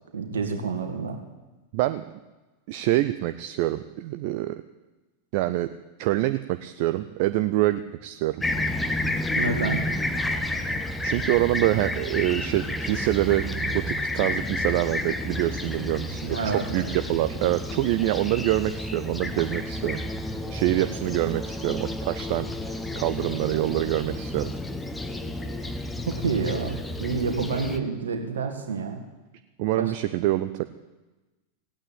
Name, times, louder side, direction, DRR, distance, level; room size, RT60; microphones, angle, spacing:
voice 1, 0.1-1.2 9.3-9.8 16.3-16.9 26.1-29.0 29.7-29.9, right 5 dB, 65° right, 5 dB, 2.2 m, -28 dB
voice 2, 1.7-2.0 2.7-4.6 5.3-5.7 6.0-8.4 11.0-20.0 20.5-24.5 29.6-30.6, right 16 dB, 45° right, 10 dB, 0.5 m, -26 dB
Fixed-wing aircraft airplane, 8.4-27.8, left 1 dB, 10° left, 1.1 m, -31 dB
16.5 x 8.9 x 8.9 m, 1.1 s
figure-of-eight pair, 90°, 0 cm